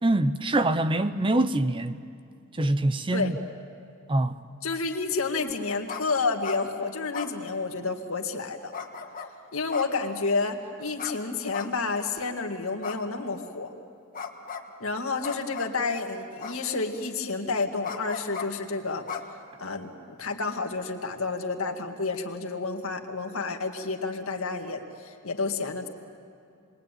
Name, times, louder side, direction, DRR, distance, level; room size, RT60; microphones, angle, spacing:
voice 1, 0.0-2.0 2.6-3.3 4.1-4.4, right 1 dB, 25° right, 0.6 m, -24 dB
voice 2, 4.6-8.7 9.5-13.7 14.8-19.0 19.6-25.9, left 4 dB, 70° left, 2.0 m, -30 dB
sound 1, 5.9-6.0 6.3-6.6 7.1-7.9 8.7-9.3 9.7-10.4 11.0-11.1 11.5-12.1 12.8-13.5 14.1-14.7 15.2-15.8 16.4-17.0 17.8-18.5 19.1-19.8, left 6 dB, 40° left, 1.6 m, -37 dB
28.0 x 21.5 x 9.1 m
head